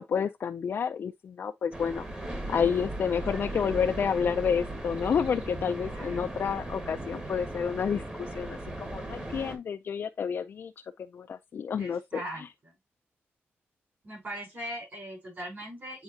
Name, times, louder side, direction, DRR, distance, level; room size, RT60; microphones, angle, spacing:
voice 1, 0.0-2.1 2.5-8.0 8.3-10.7 11.1-12.0, left 7 dB, 55° left, 0.4 m, -29 dB
sound 1, 1.7-9.6, right 1 dB, 20° right, 1.5 m, -37 dB
voice 2, 3.1-3.7 5.8-6.2 11.8-12.7 14.0-16.0, right 1 dB, 40° right, 5.0 m, -41 dB
8.0 x 4.5 x 2.7 m
wide cardioid pair, 160°, 5 cm